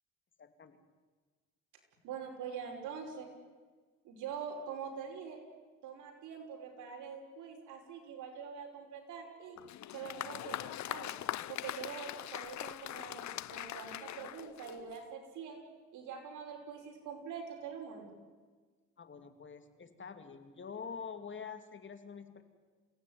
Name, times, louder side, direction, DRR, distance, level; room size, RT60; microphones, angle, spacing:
voice 1, 0.4-0.8 19.0-22.4, left 6 dB, 40° left, 8 dB, 2.8 m, -46 dB
voice 2, 2.0-3.3 4.0-5.4 5.8-9.6 9.9-11.2 11.5-15.6 15.9-18.1, right 7 dB, 85° right, 2 dB, 5.6 m, -44 dB
Applause, 9.6-15.1, left 13 dB, 65° left, 0.7 m, -42 dB
28.0 x 17.0 x 9.6 m, 1.4 s
cardioid pair, 90°, 30 cm